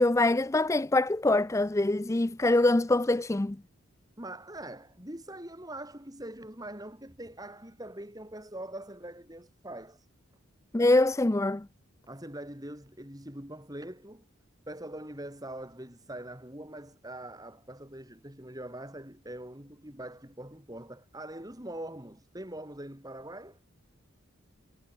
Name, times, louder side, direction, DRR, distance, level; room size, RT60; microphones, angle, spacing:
voice 1, 0.0-3.6 10.7-11.7, left 2 dB, 15° left, 0.4 m, -24 dB
voice 2, 4.2-10.1 12.1-14.3 14.7-23.6, right 1 dB, 15° right, 4.1 m, -43 dB
head